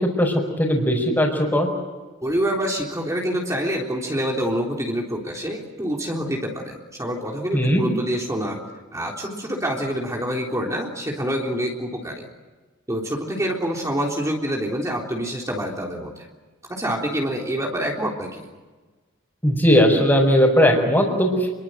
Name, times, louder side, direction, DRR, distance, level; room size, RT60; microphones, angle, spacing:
voice 1, 0.0-1.7 7.5-7.8 19.4-21.5, equal, 10° left, -3 dB, 5.4 m, -18 dB
voice 2, 2.2-8.6 8.9-12.3 12.9-16.3 16.7-18.5, equal, 15° right, -1 dB, 3.7 m, -26 dB
29.0 x 23.0 x 8.1 m, 1.3 s
head